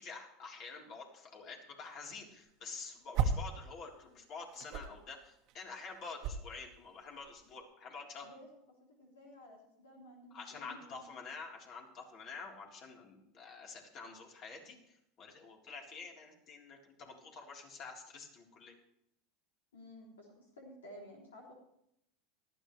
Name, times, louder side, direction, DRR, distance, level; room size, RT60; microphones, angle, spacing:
voice 1, 0.0-8.3 10.3-18.8, left 4 dB, 45° left, 0 dB, 3.8 m, -48 dB
sound 1, 2.0-3.6 3.9-7.6, right 5 dB, 55° right, 1.3 m, -37 dB
voice 2, 8.8-11.1 19.7-21.5, equal, 90° left, -1 dB, 3.1 m, -54 dB
18.5 x 13.5 x 3.3 m, 0.76 s
hypercardioid pair, 95°, 0 cm